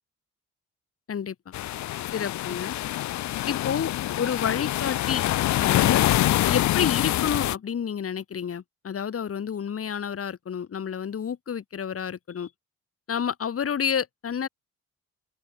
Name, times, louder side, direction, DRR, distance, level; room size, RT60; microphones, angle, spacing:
voice 1, 1.1-1.5 2.1-2.8 3.5-5.2 5.5-6.1 6.5-12.5 13.1-14.5, left 7 dB, 50° left, 3.7 m, -30 dB
sound 1, 1.5-7.6, left 14 dB, 70° left, 0.7 m, -25 dB
open air
cardioid pair, 90°, 30 cm